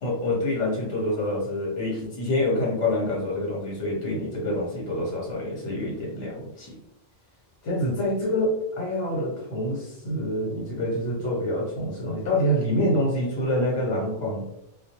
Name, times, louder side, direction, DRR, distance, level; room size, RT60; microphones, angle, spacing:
voice 1, 0.0-6.8 7.6-14.5, left 1 dB, 75° left, -4 dB, 1.1 m, -26 dB
2.2 x 2.1 x 2.7 m, 0.80 s
omnidirectional pair, 1.2 m